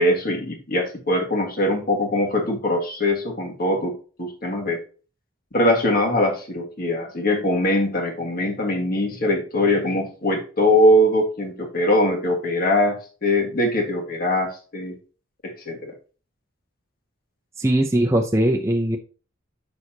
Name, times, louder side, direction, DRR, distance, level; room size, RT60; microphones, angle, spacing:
voice 1, 0.0-4.8 5.5-15.0 15.4-15.9, left 1 dB, 45° left, 2 dB, 1.7 m, -22 dB
voice 2, 17.6-19.0, right 1 dB, 15° right, 0 dB, 0.6 m, -20 dB
7.9 x 6.3 x 2.8 m, 0.36 s
head